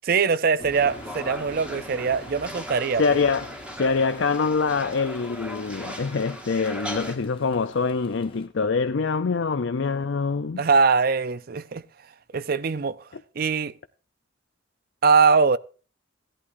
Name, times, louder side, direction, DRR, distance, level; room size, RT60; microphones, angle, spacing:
voice 1, 0.0-3.2 10.6-11.8 12.3-13.0 13.4-13.7 15.0-15.6, right 5 dB, 50° right, 0.5 m, -22 dB
sound 1, 0.6-8.5, left 1 dB, 25° left, 1.1 m, -45 dB
sound 2, 0.7-7.2, equal, 5° right, 1.6 m, -38 dB
voice 2, 3.0-3.5 3.8-10.6, left 4 dB, 70° left, 0.5 m, -24 dB
16.5 x 11.0 x 2.6 m
head